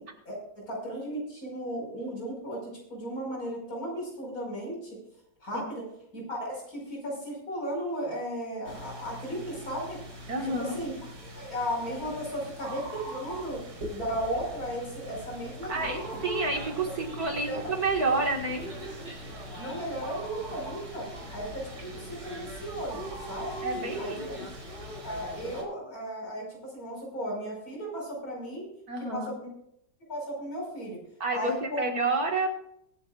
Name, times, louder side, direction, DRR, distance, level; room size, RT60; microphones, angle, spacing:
voice 1, 0.0-5.0 5.4-5.8 6.1-10.0 10.4-10.9 11.3-13.6 13.9-16.2 17.5-17.8 18.1-18.2 19.6-21.1 21.3-23.6 24.0-24.1 25.0-28.7 29.0-29.5 30.1-31.0 31.3-31.8, equal, 50° left, -1 dB, 5.7 m, -35 dB
sound 1, 8.6-25.6, equal, 75° right, 4.8 m, -41 dB
voice 2, 10.3-10.8 15.7-16.0 16.2-18.7 23.6-24.2 28.9-29.3 31.2-32.5, right 3 dB, 55° right, 2 dB, 2.3 m, -29 dB
23.0 x 10.0 x 2.5 m, 0.74 s
omnidirectional pair, 1.9 m